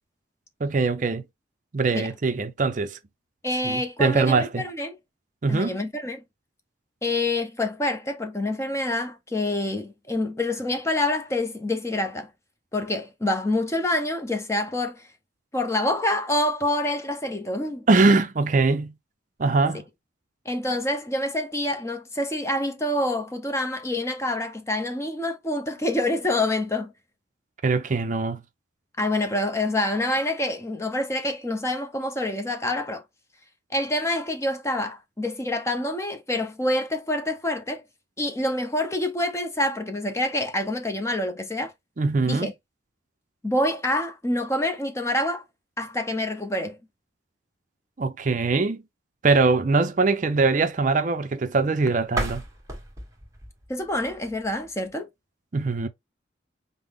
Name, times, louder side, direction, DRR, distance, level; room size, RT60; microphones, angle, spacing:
voice 1, 0.6-1.2 1.7-3.0 3.6-4.6 5.4-5.8 17.9-18.9 19.4-19.8 27.6-28.4 42.0-42.5 48.0-48.8 49.2-52.4 55.5-55.9, right 3 dB, 40° right, 0.5 m, -22 dB
voice 2, 3.4-5.0 5.5-6.2 7.0-12.3 12.7-15.1 15.5-17.9 20.5-26.9 29.0-33.0 33.7-37.8 38.2-41.7 42.3-42.5 43.4-45.4 45.8-46.8 53.7-55.1, left 1 dB, 15° left, 0.5 m, -27 dB
sound 1, 52.0-54.9, right 1 dB, 15° right, 1.2 m, -35 dB
5.4 x 2.0 x 3.4 m
head